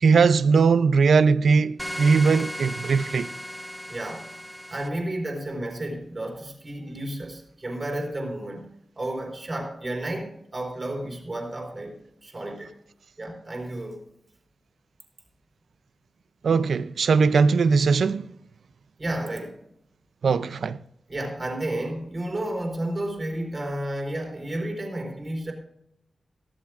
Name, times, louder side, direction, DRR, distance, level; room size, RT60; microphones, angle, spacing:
voice 1, 0.0-3.3 16.4-18.3 20.2-20.8, right 5 dB, 75° right, 0.5 m, -20 dB
sound 1, 1.8-4.9, equal, 5° left, 0.5 m, -36 dB
voice 2, 3.9-4.3 4.7-8.7 9.0-12.0 12.2-12.7 13.2-14.0 19.0-19.6 21.1-25.5, right 1 dB, 30° right, 4.2 m, -32 dB
15.5 x 14.0 x 2.5 m
wide cardioid pair, 95°, 0 cm